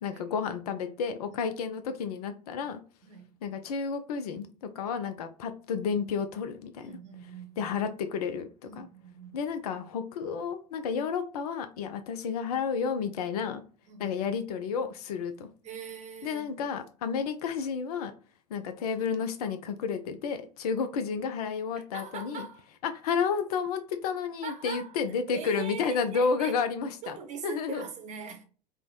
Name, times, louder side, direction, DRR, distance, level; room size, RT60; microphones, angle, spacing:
voice 1, 0.0-2.8 3.4-7.0 7.6-8.5 8.7-8.9 9.3-13.6 14.0-15.5 16.2-18.1 18.5-22.5 22.8-27.2 27.4-27.8, left 6 dB, 65° left, 0.4 m, -31 dB
voice 2, 6.8-7.7 8.6-9.4 13.9-14.2 15.6-16.7 21.9-22.7 24.4-25.0 25.3-26.6 27.0-28.4, right 6 dB, 35° right, 0.8 m, -42 dB
3.3 x 2.0 x 2.2 m
figure-of-eight pair, 75°, 21 cm